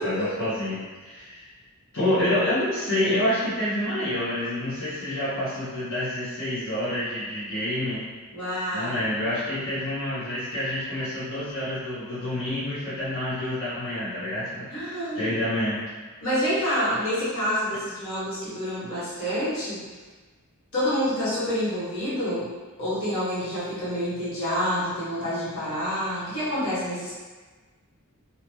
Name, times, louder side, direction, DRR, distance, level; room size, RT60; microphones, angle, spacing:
voice 1, 0.0-1.4 1.9-8.0 8.7-15.8, left 1 dB, 50° left, -14 dB, 0.9 m, -28 dB
voice 2, 8.3-9.2 14.7-15.3 16.2-19.9 20.7-22.5 22.8-27.2, equal, 70° left, -11 dB, 1.2 m, -28 dB
2.8 x 2.1 x 3.0 m, 1.3 s
head